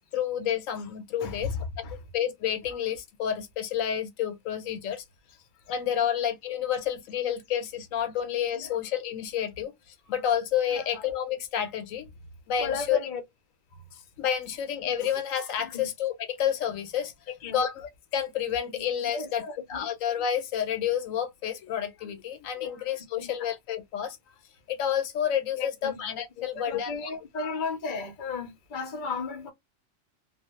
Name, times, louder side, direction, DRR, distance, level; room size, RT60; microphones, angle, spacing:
voice 1, 0.1-1.6 2.1-5.0 5.7-12.1 12.5-13.0 13.9-17.1 17.5-19.4 19.7-24.2 24.7-27.1 27.3-27.6, left 9 dB, 85° left, 1.0 m, -30 dB
voice 2, 1.2-1.6 1.8-1.9 8.6-8.8 10.7-11.0 12.6-13.2 15.6-15.9 17.4-17.6 18.7-18.8 19.1-19.6 22.6-22.7 23.2-23.3 25.6-26.0 26.4-29.5, left 4 dB, 50° left, 0.6 m, -35 dB
2.2 x 2.1 x 2.9 m
omnidirectional pair, 1.4 m